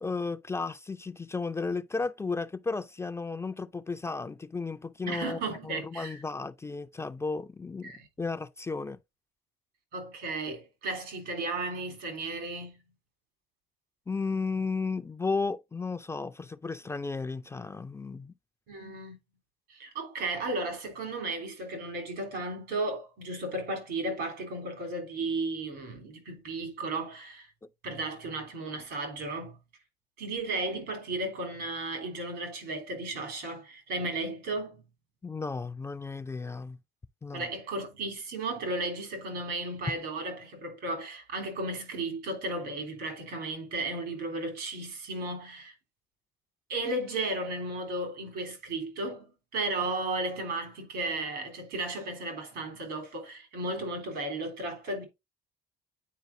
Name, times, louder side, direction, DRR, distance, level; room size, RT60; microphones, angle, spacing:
voice 1, 0.0-7.9 8.2-9.0 14.1-18.3 35.2-36.8 37.2-37.5, left 4 dB, 15° left, 0.3 m, -34 dB
voice 2, 5.1-6.2 7.8-8.1 9.9-12.8 18.7-19.2 19.7-27.5 27.8-29.6 30.2-34.8 37.3-45.7 46.7-55.0, right 2 dB, 85° right, 3.5 m, -34 dB
9.3 x 4.6 x 2.7 m
cardioid pair, 110°, 17 cm